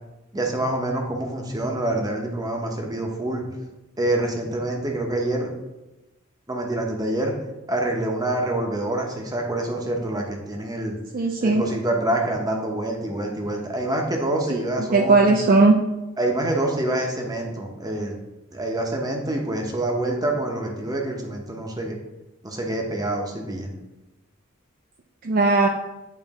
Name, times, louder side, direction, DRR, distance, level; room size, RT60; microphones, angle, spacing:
voice 1, 0.3-3.5 4.0-5.5 6.5-7.3 7.7-11.0 11.4-15.3 16.2-18.2 18.5-21.9 22.4-23.7, right 1 dB, 20° right, 1 dB, 0.9 m, -26 dB
voice 2, 11.1-11.6 14.9-15.8 25.2-25.7, right 3 dB, 45° right, 3 dB, 0.4 m, -17 dB
8.8 x 3.2 x 3.6 m, 1.0 s
head